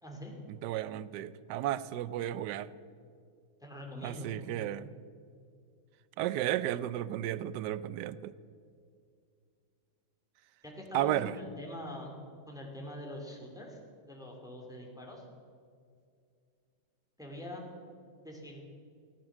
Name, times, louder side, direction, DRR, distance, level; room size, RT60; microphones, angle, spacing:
voice 1, 0.0-0.4 3.6-4.7 10.6-12.1 12.5-15.2 17.2-17.7 18.2-18.6, equal, ahead, 0 dB, 2.5 m, -44 dB
voice 2, 0.6-2.7 4.0-4.9 6.2-8.3 10.9-11.3, right 13 dB, 80° right, 17 dB, 0.9 m, -33 dB
17.5 x 10.5 x 7.4 m, 2.3 s
omnidirectional pair, 2.3 m